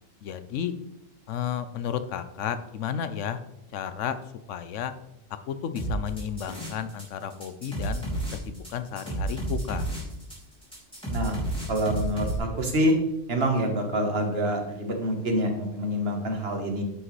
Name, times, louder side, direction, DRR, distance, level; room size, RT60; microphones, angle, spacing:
voice 1, 0.2-0.7 1.3-3.4 3.7-4.2 4.5-4.9 5.5-8.1 8.3-9.8, left 8 dB, 85° left, 11 dB, 1.0 m, -32 dB
sound 1, 5.8-7.0 7.3-12.4, right 1 dB, 5° left, 3.2 m, -31 dB
voice 2, 11.1-11.4 11.7-12.9 13.3-16.8, equal, 55° right, 3 dB, 1.5 m, -26 dB
9.6 x 6.3 x 3.2 m, 0.87 s
omnidirectional pair, 1.2 m